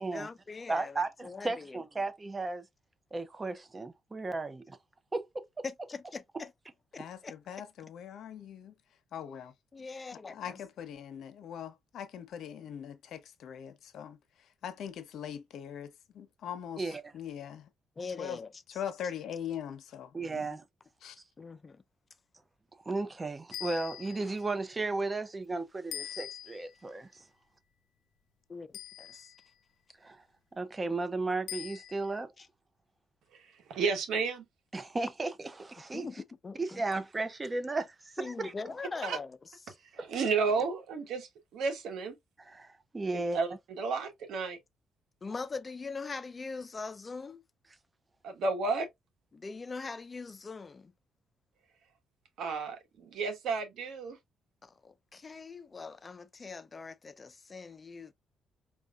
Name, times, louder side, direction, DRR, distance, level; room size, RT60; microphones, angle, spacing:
voice 1, 0.1-1.8 5.6-6.5 7.2-7.3 9.7-10.6 18.0-18.5 21.4-21.8 28.5-29.3 32.4-32.5 35.9-36.8 38.2-39.4 39.6-39.7 45.2-47.4 49.3-50.9 54.6-58.1, left 4 dB, 30° left, 0.4 m, -42 dB
voice 2, 0.7-2.6 3.1-4.8 5.1-5.6 16.8-17.0 20.1-20.6 22.9-27.2 30.0-30.2 30.5-32.3 34.7-36.1 36.6-38.5 42.4-43.4, right 3 dB, 25° right, 0.6 m, -35 dB
voice 3, 7.0-8.7 9.1-9.5 10.3-14.2 14.6-17.7 18.2-18.4 18.7-20.6 21.0-21.2, left 9 dB, 70° left, 0.8 m, -41 dB
sound 1, 23.5-24.4 25.9-26.8 28.7-29.5 31.5-32.2, left 12 dB, 90° left, 0.4 m, -43 dB
voice 4, 33.7-34.4 39.0-39.2 39.9-42.1 43.1-43.5 43.8-44.6 48.2-48.9 52.4-54.2, right 4 dB, 75° right, 1.2 m, -32 dB
4.6 x 2.7 x 2.3 m
cardioid pair, 90°, 0 cm